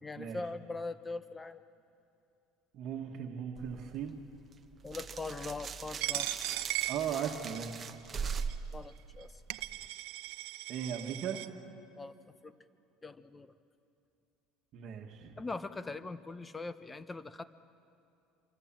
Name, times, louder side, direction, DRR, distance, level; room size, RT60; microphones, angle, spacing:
voice 1, 0.0-1.6 4.8-6.3 8.7-9.4 12.0-12.1 12.4-12.5 13.0-13.5 15.4-17.4, left 3 dB, 10° left, 13 dB, 0.7 m, -41 dB
voice 2, 2.7-4.2 6.9-7.8 10.7-11.4 14.7-15.5, right 8 dB, 45° right, 3 dB, 1.6 m, -37 dB
sound 1, 3.6-9.9, right 6 dB, 20° right, 0.9 m, -41 dB
Coin (dropping), 6.0-7.8 8.4-8.5 9.2-9.3 9.5-11.5, right 17 dB, 80° right, 0.7 m, -37 dB
26.0 x 24.5 x 7.5 m, 2.6 s
cardioid pair, 155°, 0 cm